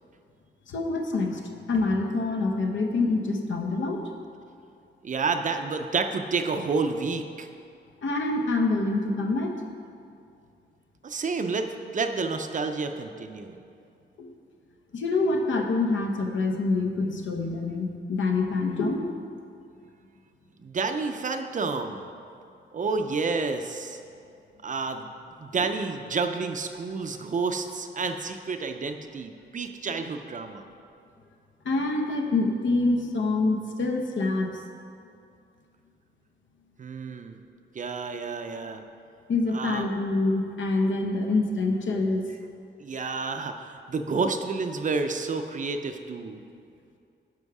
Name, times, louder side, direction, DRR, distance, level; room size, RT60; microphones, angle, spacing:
voice 1, 0.7-1.4 1.7-4.0 8.0-9.6 14.2-14.3 14.9-19.3 31.6-34.5 39.3-42.2, left 3 dB, 80° left, 3 dB, 1.0 m, -26 dB
voice 2, 5.0-7.5 11.0-13.6 20.6-22.1 22.7-24.0 24.6-25.1 25.4-30.7 36.8-37.4 37.7-38.8 39.5-39.9 42.8-46.4, right 4 dB, 40° right, 6 dB, 0.5 m, -30 dB
10.5 x 6.2 x 4.8 m, 2.5 s
wide cardioid pair, 175°, 19 cm